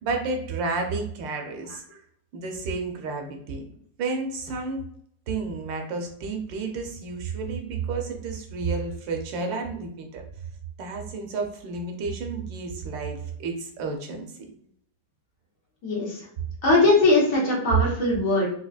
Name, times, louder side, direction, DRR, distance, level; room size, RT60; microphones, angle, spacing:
voice 1, 0.0-2.0 2.3-3.6 4.0-4.8 5.3-10.2 10.8-14.3, right 4 dB, 90° right, 3 dB, 1.4 m, -31 dB
voice 2, 15.8-16.2 16.6-18.5, left 2 dB, 50° left, -3 dB, 1.4 m, -20 dB
4.7 x 2.3 x 2.4 m, 0.68 s
omnidirectional pair, 1.9 m